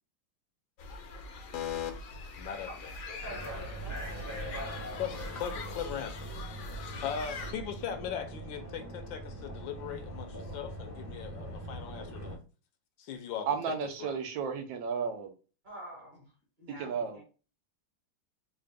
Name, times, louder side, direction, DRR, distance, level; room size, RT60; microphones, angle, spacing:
sound 1, 0.8-7.5, left 1 dB, 65° left, 0.8 m, -42 dB
voice 1, 1.5-1.9 2.4-2.9 5.0-6.7 7.0-12.4 13.0-14.2, left 8 dB, 80° left, 1.4 m, -39 dB
voice 2, 2.6-4.3 15.6-16.3 16.6-17.2, right 1 dB, 30° right, 1.3 m, -48 dB
sound 2, 3.2-12.4, right 1 dB, 25° left, 0.3 m, -42 dB
voice 3, 13.5-15.3 16.8-17.2, right 6 dB, 75° right, 1.3 m, -33 dB
3.8 x 2.4 x 3.4 m
omnidirectional pair, 2.1 m